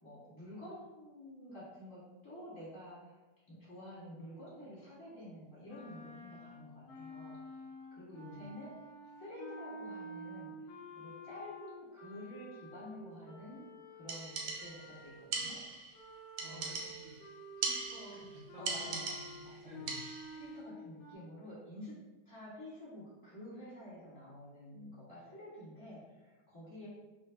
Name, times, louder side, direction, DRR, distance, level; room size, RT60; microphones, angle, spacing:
voice 1, 0.0-7.4 7.9-8.7 9.0-15.6 16.4-16.7 18.5-19.9 20.3-22.0 22.2-26.9, left 1 dB, 15° left, -10 dB, 1.2 m, -50 dB
sound 1, 5.7-15.5 15.9-21.2, equal, 75° left, 1.2 m, -50 dB
voice 2, 8.1-8.5 16.4-17.2 17.6-20.0, equal, 60° right, -5 dB, 0.9 m, -53 dB
sound 2, 14.1-14.9 15.3-16.0 16.4-17.2 17.6-18.3 18.7-19.5 19.9-20.4, right 4 dB, 85° right, 1.3 m, -39 dB
2.8 x 2.6 x 3.4 m, 1.2 s
omnidirectional pair, 2.1 m